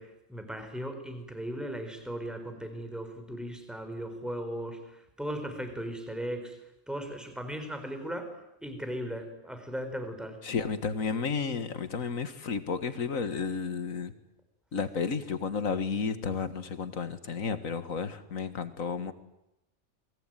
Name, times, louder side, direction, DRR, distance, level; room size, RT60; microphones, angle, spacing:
voice 1, 0.0-6.6 6.9-10.4, equal, ahead, 6 dB, 4.6 m, -37 dB
voice 2, 10.4-14.1 14.7-19.1, left 5 dB, 80° left, 11 dB, 2.1 m, -32 dB
28.5 x 22.5 x 9.2 m, 0.87 s
omnidirectional pair, 1.4 m